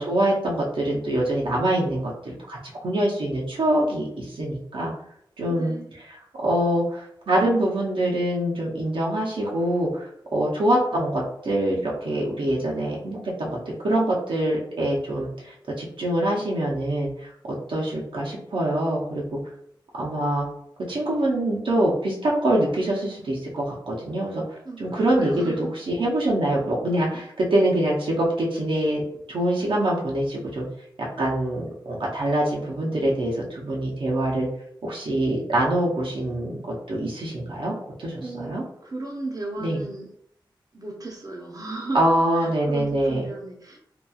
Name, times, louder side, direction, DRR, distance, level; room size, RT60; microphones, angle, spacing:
voice 1, 0.0-4.9 5.4-5.8 6.0-17.3 17.7-19.4 20.0-20.5 20.8-29.0 29.3-30.7 31.2-34.5 34.8-37.7 38.0-38.6 39.6-39.8 41.9-43.2, right 1 dB, 85° right, -4 dB, 0.6 m, -24 dB
voice 2, 5.5-5.9 24.6-24.8 25.1-25.7 38.2-40.1 40.7-42.0 42.3-43.8, right 2 dB, 45° right, 0 dB, 0.6 m, -35 dB
2.8 x 2.3 x 2.3 m, 0.71 s
cardioid pair, 55°, 9 cm